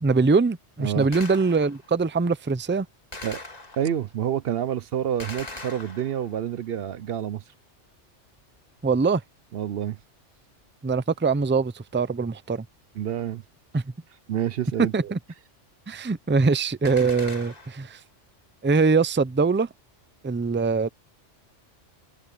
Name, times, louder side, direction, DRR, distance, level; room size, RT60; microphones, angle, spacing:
voice 1, 0.0-2.9 8.8-9.2 10.8-12.6 13.7-13.8 14.9-15.2 15.9-18.0 18.6-19.7 20.2-20.9, right 4 dB, 20° right, 0.3 m, -23 dB
Gunshot gunfire, 1.1-1.9 3.1-4.1 5.2-6.5 16.9-17.9, left 2 dB, 35° left, 2.1 m, -40 dB
voice 2, 3.8-7.4 9.5-10.0 12.9-13.4 14.3-15.1, right 10 dB, 60° right, 0.7 m, -28 dB
omnidirectional pair, 1.2 m